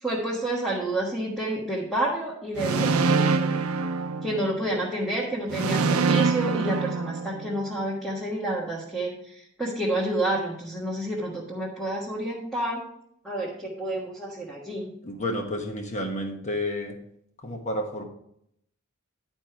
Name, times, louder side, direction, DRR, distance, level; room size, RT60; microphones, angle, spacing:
voice 1, 0.0-3.6 4.2-12.8 13.2-14.9, right 1 dB, ahead, -6 dB, 1.4 m, -29 dB
sound 1, 2.6-4.8 5.5-7.7, right 4 dB, 75° right, 0.6 m, -25 dB
voice 2, 15.0-17.0 17.4-18.0, left 1 dB, 30° left, 3 dB, 1.2 m, -30 dB
11.0 x 4.5 x 4.9 m, 0.73 s
head